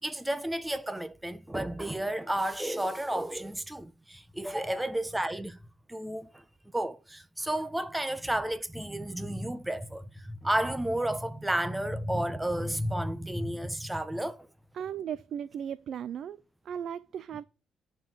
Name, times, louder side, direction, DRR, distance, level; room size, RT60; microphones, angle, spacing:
voice 1, 0.0-5.6 5.9-6.4 6.7-14.5, right 1 dB, 10° right, 1.0 m, -32 dB
voice 2, 14.7-17.4, right 9 dB, 65° right, 0.4 m, -37 dB
11.0 x 4.6 x 7.5 m
cardioid pair, 90°, 0 cm